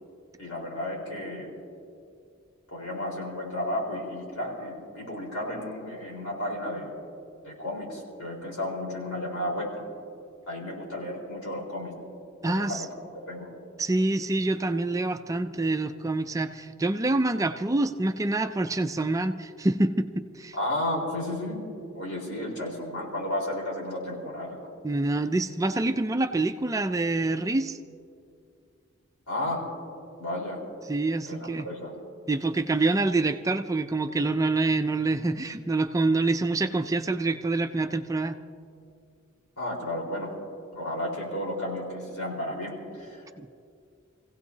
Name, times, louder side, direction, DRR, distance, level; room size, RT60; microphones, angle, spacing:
voice 1, 0.4-1.5 2.7-6.9 7.4-9.9 10.5-11.9 12.4-13.5 20.5-21.6 21.9-24.7 29.3-29.6 30.2-30.6 31.3-31.9 39.6-40.3 40.7-43.3, left 1 dB, 85° left, -3 dB, 4.3 m, -33 dB
voice 2, 12.4-12.9 13.8-20.6 24.8-27.8 30.9-31.7 32.3-38.4 43.4-43.5, right 2 dB, 15° right, 8 dB, 0.3 m, -26 dB
26.5 x 16.5 x 2.8 m, 2.4 s
head